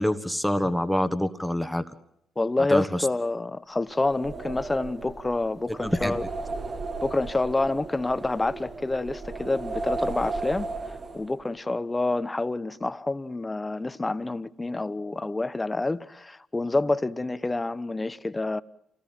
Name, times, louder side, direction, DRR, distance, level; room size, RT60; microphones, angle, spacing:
voice 1, 0.0-1.8 2.7-3.1 5.8-6.1, left 1 dB, ahead, 1.5 m, -26 dB
voice 2, 2.4-6.3 7.0-10.7 11.1-18.6, left 2 dB, 20° left, 1.0 m, -28 dB
sound 1, 3.9-11.5, right 3 dB, 45° right, 2.0 m, -35 dB
28.0 x 18.5 x 7.5 m
cardioid pair, 90°, 0 cm